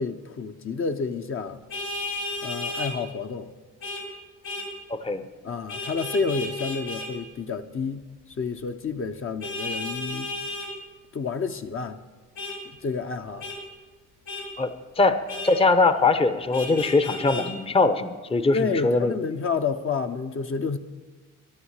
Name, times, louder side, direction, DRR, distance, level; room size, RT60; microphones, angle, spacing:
voice 1, 0.0-1.6 2.4-3.5 5.4-8.0 8.4-10.3 11.1-12.0 12.6-13.5 18.5-20.8, left 4 dB, 45° left, 0.9 m, -29 dB
Vehicle horn car horn honking, 1.7-2.9 3.8-4.0 4.4-4.7 5.7-7.1 9.4-10.7 12.4-12.6 13.4-13.6 14.3-14.5 15.3-15.5 16.5-17.5, left 2 dB, 70° left, 4.9 m, -33 dB
voice 2, 4.9-5.2 14.6-14.7 15.0-15.2 15.4-19.1, left 3 dB, 20° left, 0.8 m, -21 dB
13.0 x 11.0 x 8.2 m
cardioid pair, 90°, 30 cm